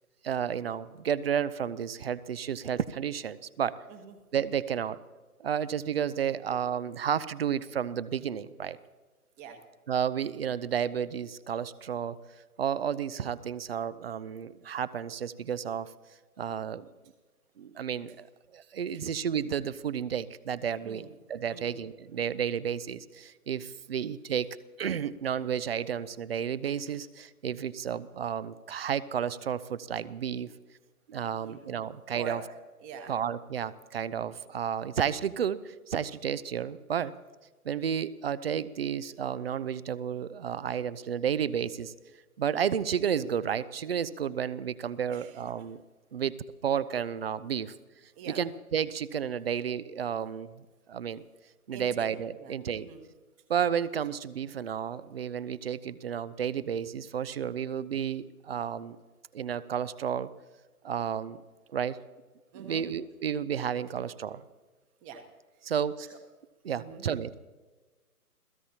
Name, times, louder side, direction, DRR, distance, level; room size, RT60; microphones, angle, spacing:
voice 1, 0.2-3.8 4.3-5.0 5.4-8.8 9.9-12.2 12.6-15.9 16.4-16.9 17.6-18.3 18.5-30.5 31.1-32.4 33.1-37.1 37.6-41.9 42.4-45.8 46.1-47.7 48.3-51.2 51.7-52.9 53.5-59.0 59.3-60.3 60.8-61.4 61.7-62.0 62.5-64.4 65.6-66.0 66.6-67.3, right 8 dB, 40° right, 18 dB, 0.7 m, -32 dB
voice 2, 31.2-31.6 32.1-32.4 32.8-33.1 45.1-45.4 48.1-48.4 51.7-52.1 52.4-53.0 62.5-62.9 65.0-65.2 66.0-66.2 66.8-67.1, right 6 dB, 15° right, 7 dB, 1.3 m, -44 dB
30.0 x 16.5 x 2.9 m, 1.3 s
figure-of-eight pair, 135°, 45 cm